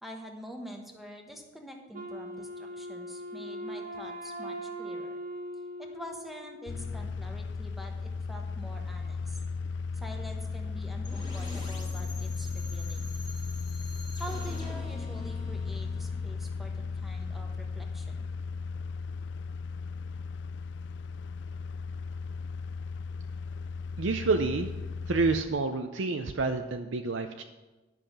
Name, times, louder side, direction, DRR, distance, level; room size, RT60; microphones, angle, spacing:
voice 1, 0.0-5.2 5.8-9.4 9.9-13.1 14.2-18.3, equal, ahead, 2 dB, 1.1 m, -46 dB
Wind instrument woodwind instrument, 1.9-6.9, equal, 45° right, 1.6 m, -40 dB
sound 1, 6.7-25.4, left 4 dB, 60° left, 0.3 m, -36 dB
sound 2, 11.0-16.8, left 2 dB, 20° left, 2.1 m, -46 dB
voice 2, 24.0-24.7 25.1-27.4, right 3 dB, 75° right, 6 dB, 0.6 m, -28 dB
11.0 x 5.8 x 6.6 m, 1.2 s
head